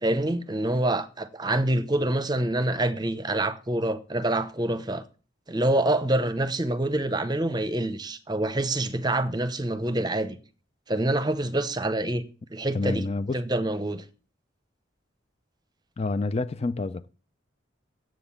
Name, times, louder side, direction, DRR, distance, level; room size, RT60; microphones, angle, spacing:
voice 1, 0.0-5.0 5.5-10.4 10.9-12.2 12.5-13.0 13.3-14.0, right 1 dB, 20° right, 0.8 m, -26 dB
voice 2, 12.7-13.4 16.0-17.1, left 3 dB, 35° left, 0.4 m, -28 dB
7.9 x 7.6 x 8.4 m
head